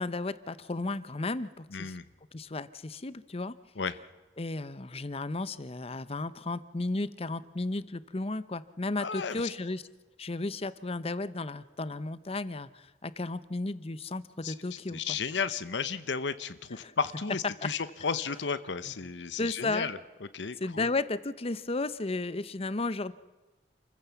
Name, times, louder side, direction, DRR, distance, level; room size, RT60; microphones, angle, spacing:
voice 1, 0.0-2.0 2.3-3.6 4.4-9.8 10.2-15.2 16.8-16.9 17.6-17.7 19.4-19.9 20.6-23.1, left 2 dB, 35° left, 16 dB, 0.8 m, -34 dB
voice 2, 1.7-2.0 3.8-4.0 9.0-9.5 14.4-20.0 20.3-20.9, left 5 dB, 85° left, 13 dB, 0.9 m, -34 dB
28.0 x 15.0 x 7.1 m, 1.2 s
head